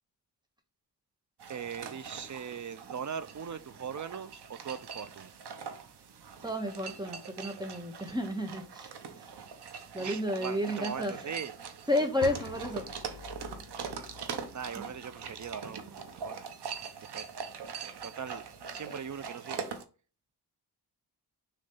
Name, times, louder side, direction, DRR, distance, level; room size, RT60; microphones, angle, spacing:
sound 1, 1.4-19.8, right 6 dB, 70° right, 1.2 m, -43 dB
voice 1, 1.5-5.3 10.0-11.5 14.5-16.4 17.1-17.3 18.0-19.6, right 7 dB, 45° right, 0.6 m, -40 dB
voice 2, 6.4-8.9 9.2-9.3 9.9-11.2 11.9-12.8 14.8-14.9, left 1 dB, 10° right, 1.4 m, -32 dB
sound 2, 12.2-16.2, left 9 dB, 65° left, 0.8 m, -47 dB
6.6 x 3.3 x 5.4 m
wide cardioid pair, 115°, 41 cm